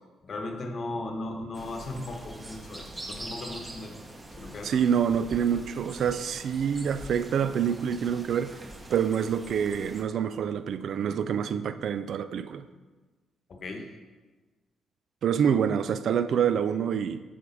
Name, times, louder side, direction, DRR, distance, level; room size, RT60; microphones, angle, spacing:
voice 1, 0.2-3.9 4.4-4.8 13.5-13.9, left 2 dB, 50° left, 3 dB, 1.1 m, -37 dB
sound 1, 1.5-10.0, right 1 dB, 20° right, 0.9 m, -44 dB
voice 2, 4.6-8.6 8.9-12.7 15.2-17.2, right 8 dB, 65° right, 12 dB, 0.3 m, -26 dB
8.6 x 3.4 x 5.3 m, 1.3 s
cardioid pair, 90°, 0 cm